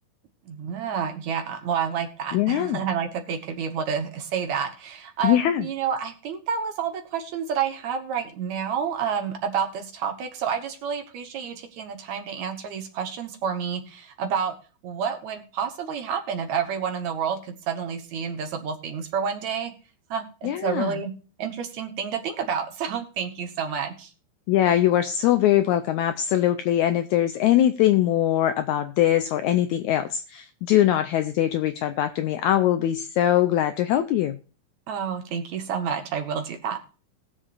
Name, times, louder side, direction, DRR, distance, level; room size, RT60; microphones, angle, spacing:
voice 1, 0.4-14.5 14.8-19.7 20.1-21.1 21.4-24.1 34.9-36.8, right 7 dB, 65° right, 5 dB, 2.2 m, -29 dB
voice 2, 2.3-2.8 5.2-5.7 20.4-21.0 24.5-34.4, left 12 dB, 80° left, 9 dB, 1.7 m, -22 dB
20.0 x 7.2 x 2.5 m, 0.37 s
omnidirectional pair, 3.9 m